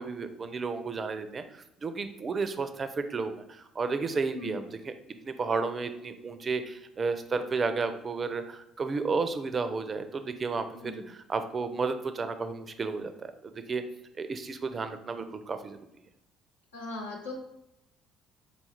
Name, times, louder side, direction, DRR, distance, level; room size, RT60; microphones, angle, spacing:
voice 1, 0.0-4.9 5.2-13.8 14.2-15.8, right 4 dB, 35° right, 9 dB, 0.4 m, -32 dB
voice 2, 10.7-11.1 16.7-17.3, left 3 dB, 80° left, -2 dB, 0.8 m, -39 dB
3.9 x 2.4 x 4.3 m, 0.85 s
figure-of-eight pair, 50°, 0 cm